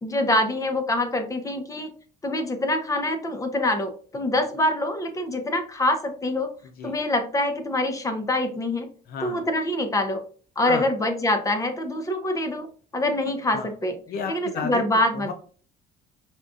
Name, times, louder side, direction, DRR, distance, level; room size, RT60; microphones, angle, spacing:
voice 1, 0.0-1.9 2.2-6.5 6.8-8.9 9.2-10.2 10.6-12.7 12.9-13.9 14.3-15.3, left 1 dB, 20° left, 6 dB, 0.7 m, -25 dB
voice 2, 6.6-6.9 9.1-9.5 10.6-10.9 13.5-13.7 14.1-14.8 15.1-15.3, left 6 dB, 65° left, 7 dB, 0.5 m, -32 dB
5.1 x 2.3 x 2.4 m, 0.41 s
cardioid pair, 110°, 17 cm